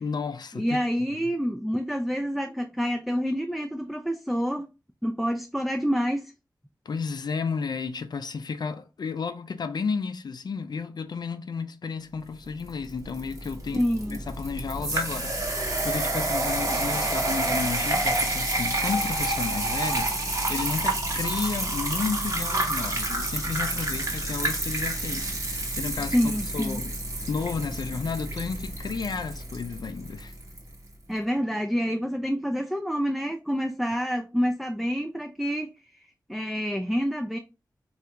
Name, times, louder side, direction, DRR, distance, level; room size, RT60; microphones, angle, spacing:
voice 1, 0.0-0.8 1.2-1.4 6.9-20.1 20.5-26.9 27.3-30.3, left 5 dB, 70° left, 0.4 m, -32 dB
voice 2, 0.5-4.7 5.0-6.3 13.7-14.2 26.1-26.8 31.1-35.7 36.3-37.4, equal, ahead, 0.3 m, -27 dB
sound 1, 12.6-30.7, right 2 dB, 45° right, 0.9 m, -29 dB
3.2 x 2.4 x 2.9 m
wide cardioid pair, 75°, 7 cm